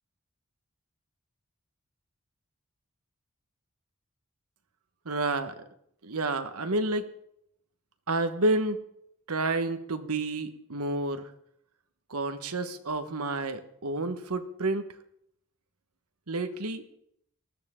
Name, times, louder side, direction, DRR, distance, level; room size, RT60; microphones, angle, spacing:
voice 1, 5.0-5.5 6.0-7.1 8.1-8.8 9.3-11.3 12.1-14.9 16.3-16.8, right 2 dB, 80° right, 8 dB, 1.3 m, -29 dB
19.5 x 14.5 x 3.7 m, 0.73 s
head